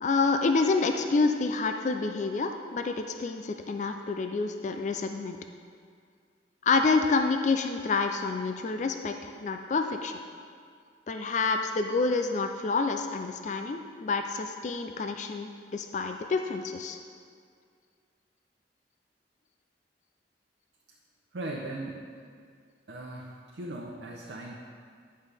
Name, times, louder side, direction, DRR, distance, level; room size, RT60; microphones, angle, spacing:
voice 1, 0.0-5.4 6.6-10.2 11.1-17.0, left 4 dB, 40° left, 6 dB, 0.4 m, -28 dB
voice 2, 21.3-22.0 22.9-24.6, right 2 dB, 80° right, -2 dB, 0.7 m, -38 dB
10.0 x 5.5 x 3.4 m, 2.1 s
head